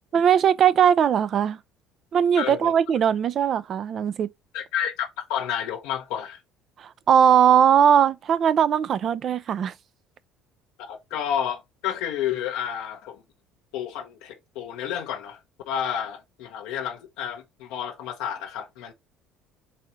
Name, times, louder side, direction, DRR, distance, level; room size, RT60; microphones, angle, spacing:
voice 1, 0.1-1.6 2.1-4.3 6.8-9.7, right 8 dB, 50° right, 0.4 m, -19 dB
voice 2, 2.4-2.7 4.5-6.4 10.8-13.2 13.7-15.4 15.7-18.9, left 9 dB, 80° left, 0.8 m, -30 dB
4.1 x 2.8 x 4.3 m
supercardioid pair, 90°, 0 cm